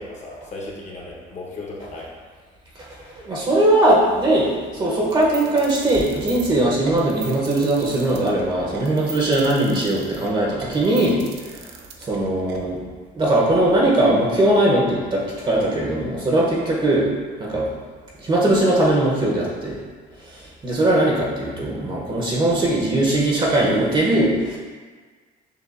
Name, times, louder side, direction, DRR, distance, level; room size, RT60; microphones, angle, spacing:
voice 1, 0.0-2.1, left 2 dB, 45° left, -2 dB, 1.0 m, -35 dB
voice 2, 3.2-11.2 11.5-11.7 12.0-12.8 13.1-17.1 17.4-17.7 18.2-19.8 20.2-24.6, right 1 dB, 30° right, -4 dB, 0.8 m, -20 dB
sound 1, 5.1-12.6, right 6 dB, 80° right, 0.5 m, -38 dB
6.6 x 2.5 x 2.4 m, 1.5 s
cardioid pair, 110°, 17 cm